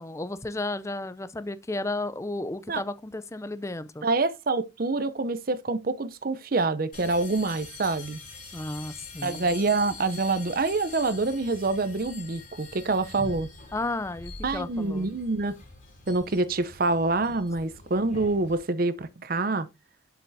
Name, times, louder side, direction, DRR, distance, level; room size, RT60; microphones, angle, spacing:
voice 1, 0.0-4.1 8.5-9.5 13.7-15.1, left 2 dB, 15° left, 0.4 m, -33 dB
voice 2, 4.0-8.2 9.2-13.5 14.4-15.6 16.1-19.7, right 3 dB, 45° right, 0.6 m, -26 dB
sound 1, 6.9-18.6, left 3 dB, 40° left, 3.2 m, -44 dB
7.5 x 7.0 x 2.7 m
head